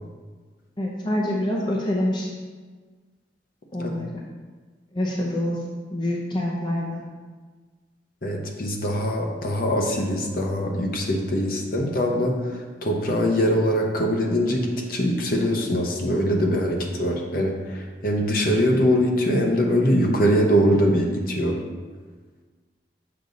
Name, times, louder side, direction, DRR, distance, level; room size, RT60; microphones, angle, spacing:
voice 1, 0.8-2.3 3.7-4.2 4.9-5.6 5.9-7.0, left 1 dB, 25° left, -3 dB, 0.7 m, -26 dB
voice 2, 8.2-21.6, equal, 50° left, 1 dB, 0.9 m, -22 dB
6.7 x 5.2 x 4.0 m, 1.4 s
head